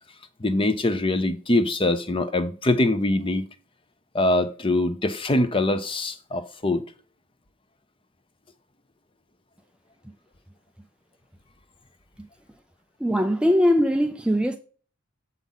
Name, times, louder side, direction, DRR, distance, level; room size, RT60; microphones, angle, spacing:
voice 1, 0.4-3.4 4.1-6.8, left 2 dB, 25° left, 0.7 m, -23 dB
voice 2, 13.0-14.6, equal, 5° right, 0.4 m, -21 dB
7.4 x 5.3 x 4.0 m
head